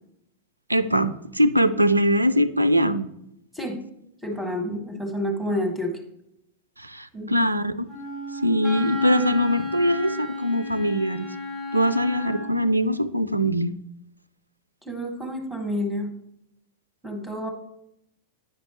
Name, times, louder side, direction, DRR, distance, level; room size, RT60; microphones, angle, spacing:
voice 1, 0.7-3.1 6.8-7.9 8.4-11.3 11.7-13.7, equal, 85° right, 13 dB, 0.3 m, -22 dB
voice 2, 4.2-5.9 7.1-7.3 14.8-16.1 17.0-17.5, equal, ahead, 2 dB, 1.5 m, -29 dB
Wind instrument woodwind instrument, 7.9-12.7, left 1 dB, 30° left, 2.7 m, -32 dB
9.4 x 5.2 x 2.9 m, 0.80 s
figure-of-eight pair, 90°, 0 cm